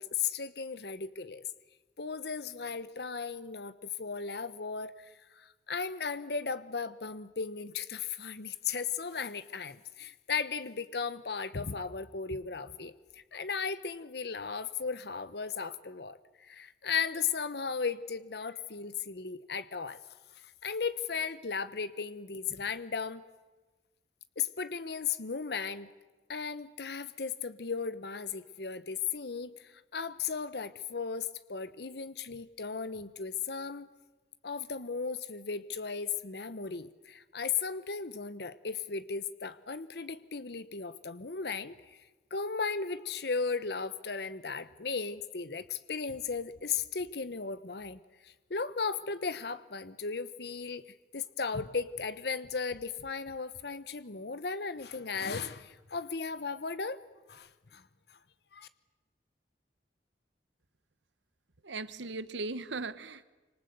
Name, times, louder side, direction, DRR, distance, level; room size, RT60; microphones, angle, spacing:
voice 1, 0.0-1.4 2.0-3.7 4.0-20.0 20.6-23.2 24.4-25.9 26.3-33.9 34.4-42.0 42.3-50.8 51.1-57.0 57.3-57.8 58.5-58.7, left 5 dB, 60° left, 14 dB, 0.9 m, -36 dB
voice 2, 61.6-63.2, right 3 dB, 80° right, 15 dB, 1.0 m, -38 dB
26.0 x 25.0 x 8.0 m, 1.2 s
head